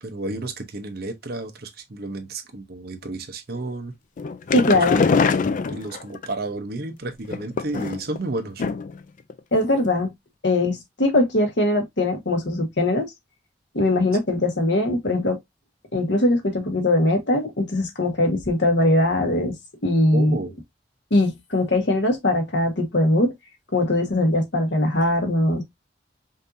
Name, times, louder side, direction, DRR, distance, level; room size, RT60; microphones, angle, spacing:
voice 1, 0.0-3.9 4.7-4.9 5.4-8.6 20.1-20.5, right 2 dB, 60° right, 0.9 m, -32 dB
sound 1, 4.2-6.3 7.3-8.2 8.6-9.0 9.3-9.4 9.7-9.8, left 5 dB, 45° left, 0.4 m, -23 dB
voice 2, 4.5-5.0 9.5-10.1 10.4-13.1 13.7-15.4 15.9-19.5 19.8-20.4 21.1-23.3 23.7-25.6, left 1 dB, 80° left, 1.3 m, -21 dB
5.2 x 2.7 x 2.6 m
head